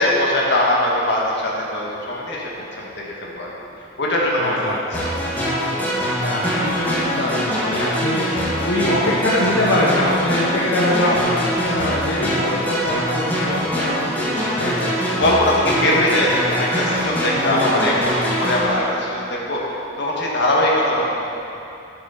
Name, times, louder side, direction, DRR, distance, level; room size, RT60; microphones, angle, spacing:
voice 1, 0.0-2.5 3.0-3.5 4.0-4.6 15.0-19.6 20.0-21.1, left 1 dB, 65° left, -4 dB, 2.1 m, -20 dB
voice 2, 4.4-5.1 6.2-15.0 17.5-18.1, left 1 dB, 85° left, -6 dB, 1.4 m, -23 dB
sound 1, 4.9-18.7, equal, 10° left, 2.6 m, -23 dB
11.5 x 7.0 x 6.0 m, 2.7 s
head